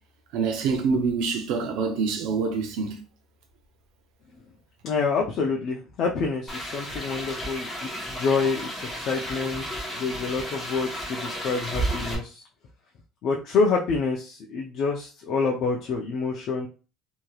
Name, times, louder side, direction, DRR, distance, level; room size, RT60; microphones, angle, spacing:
voice 1, 0.3-3.0, right 5 dB, 75° right, 0.6 m, -26 dB
voice 2, 4.8-9.6 9.9-12.4 13.2-16.7, left 4 dB, 50° left, 0.5 m, -27 dB
sound 1, 6.5-12.2, right 1 dB, 5° left, 1.0 m, -33 dB
3.1 x 2.8 x 2.3 m
cardioid pair, 150°, 0 cm